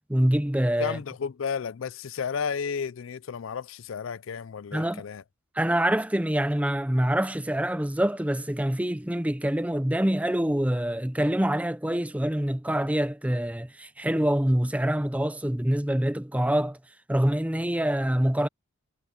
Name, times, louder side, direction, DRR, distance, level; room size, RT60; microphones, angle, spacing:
voice 1, 0.1-1.0 4.7-5.0 5.6-16.8 17.1-18.5, right 1 dB, 5° right, 0.7 m, -25 dB
voice 2, 0.8-5.2, left 6 dB, 65° left, 0.4 m, -32 dB
head